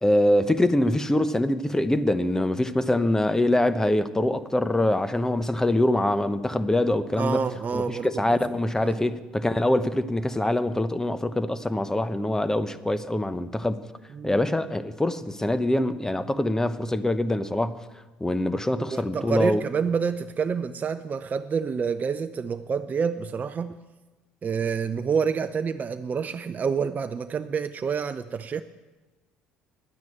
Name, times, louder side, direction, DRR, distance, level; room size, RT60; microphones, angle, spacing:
voice 1, 0.0-7.4 7.7-13.8 14.2-17.8 18.2-19.6, left 1 dB, 10° left, 0.9 m, -24 dB
voice 2, 7.2-8.2 8.8-9.0 14.1-14.4 18.8-23.8 24.4-28.6, right 6 dB, 35° right, 0.6 m, -28 dB
11.0 x 9.5 x 8.9 m
hypercardioid pair, 65°, 5 cm